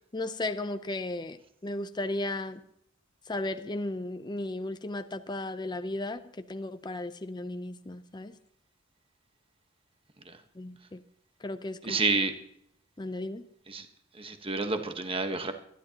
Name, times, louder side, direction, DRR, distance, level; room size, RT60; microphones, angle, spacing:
voice 1, 0.1-2.6 3.3-8.3 10.5-11.0 11.4-12.0 13.0-13.5, left 2 dB, 20° left, 9 dB, 0.6 m, -35 dB
voice 2, 11.8-12.3 13.7-13.9 14.1-15.5, right 3 dB, 25° right, 7 dB, 1.3 m, -29 dB
23.5 x 11.5 x 2.9 m, 0.71 s
head